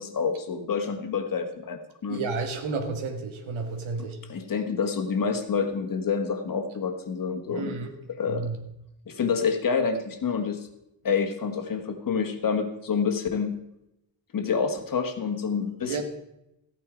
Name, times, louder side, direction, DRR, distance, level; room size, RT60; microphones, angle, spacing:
voice 1, 0.0-2.2 4.0-7.8 8.2-8.5 9.1-10.7 11.0-13.5 14.3-16.0, left 5 dB, 45° left, 6 dB, 1.5 m, -28 dB
voice 2, 2.1-4.2 7.5-7.9 8.3-8.6 15.8-16.0, right 4 dB, 90° right, 5 dB, 2.0 m, -31 dB
14.0 x 9.1 x 5.1 m, 0.85 s
wide cardioid pair, 140°, 47 cm